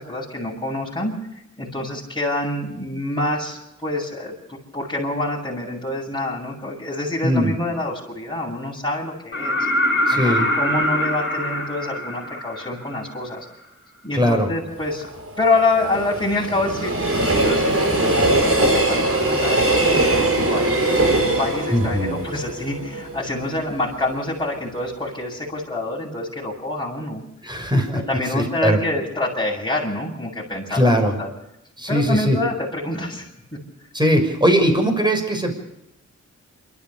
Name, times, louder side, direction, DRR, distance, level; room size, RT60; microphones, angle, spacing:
voice 1, 0.0-9.6 10.1-13.5 14.0-15.0 15.4-27.2 27.9-31.3 31.9-33.3, left 2 dB, 15° left, -7 dB, 7.4 m, -26 dB
voice 2, 7.2-7.5 10.1-10.4 14.1-14.5 21.7-22.1 27.4-28.0 28.3-28.8 30.7-31.1 31.8-32.4 33.9-35.5, equal, 15° right, 5 dB, 6.4 m, -19 dB
sound 1, 9.3-13.1 15.0-15.1, equal, 40° left, 4.1 m, -23 dB
Train, 14.7-23.8 24.2-24.3, right 2 dB, 50° right, 5.8 m, -21 dB
27.5 x 13.5 x 7.1 m, 0.84 s
cardioid pair, 65°, 29 cm